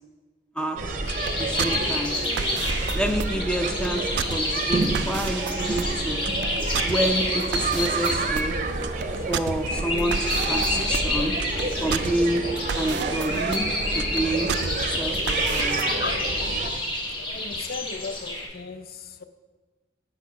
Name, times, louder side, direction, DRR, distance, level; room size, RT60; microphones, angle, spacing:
voice 1, 0.6-0.9 1.4-2.1 2.9-6.2 6.7-8.6 9.3-11.4 11.8-12.4 12.8-13.7 13.9-14.5 14.9-15.8 16.6-16.7, right 1 dB, 5° left, 4 dB, 0.5 m, -28 dB
sound 1, 0.8-16.7, right 2 dB, 40° right, 0.7 m, -29 dB
sound 2, 1.0-15.8, right 7 dB, 70° right, 0.3 m, -33 dB
sound 3, 1.1-18.5, left 1 dB, 25° left, 1.1 m, -30 dB
voice 2, 16.0-16.9 17.2-19.2, left 4 dB, 55° left, 10 dB, 0.5 m, -36 dB
8.1 x 4.6 x 5.8 m, 1.3 s
head